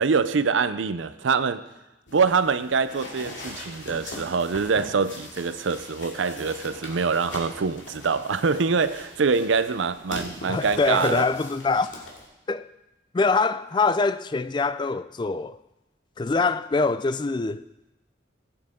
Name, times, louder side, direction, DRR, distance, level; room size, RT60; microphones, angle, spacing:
voice 1, 0.0-1.6 2.1-11.3, right 5 dB, 80° right, 0.6 m, -24 dB
sound 1, 2.1-12.3, left 2 dB, 75° left, 2.3 m, -41 dB
voice 2, 10.5-12.0 12.5-12.7 13.1-15.6 16.2-17.6, left 4 dB, 25° left, 0.3 m, -24 dB
15.5 x 8.8 x 3.7 m
head